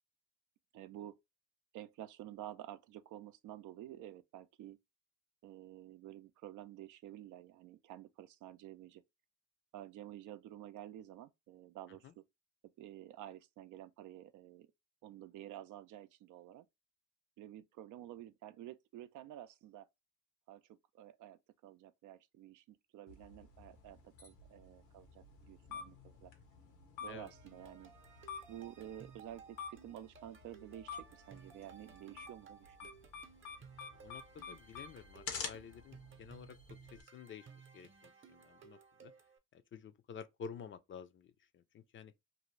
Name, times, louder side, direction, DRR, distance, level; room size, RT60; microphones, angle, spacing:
voice 1, 0.7-1.2 1.7-4.8 5.4-9.0 9.7-12.2 12.8-14.7 15.0-16.7 17.4-19.9 20.5-26.3 27.0-27.9 28.5-32.9, right 12 dB, 80° right, 0.5 m, -51 dB
sound 1, 23.1-37.0, left 5 dB, 90° left, 0.9 m, -49 dB
sound 2, 27.1-39.4, right 6 dB, 40° right, 0.7 m, -59 dB
voice 2, 33.9-37.5 37.7-39.1 39.5-42.1, left 6 dB, 40° left, 0.4 m, -51 dB
2.7 x 2.5 x 3.1 m
cardioid pair, 90°, 30 cm